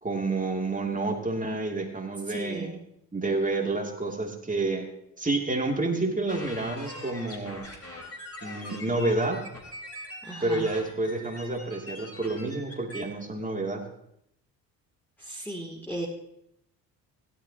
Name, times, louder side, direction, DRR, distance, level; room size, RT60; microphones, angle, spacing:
voice 1, 0.0-2.8 3.1-4.9 5.2-7.6 8.4-9.4 10.4-13.9, right 2 dB, 15° right, 1 dB, 2.8 m, -29 dB
voice 2, 2.3-2.8 10.2-10.7 15.2-16.1, right 1 dB, 5° left, -3 dB, 2.8 m, -36 dB
sound 1, 6.3-13.0, left 1 dB, 30° left, 4.3 m, -43 dB
17.0 x 12.5 x 2.9 m, 0.75 s
hypercardioid pair, 50°, 49 cm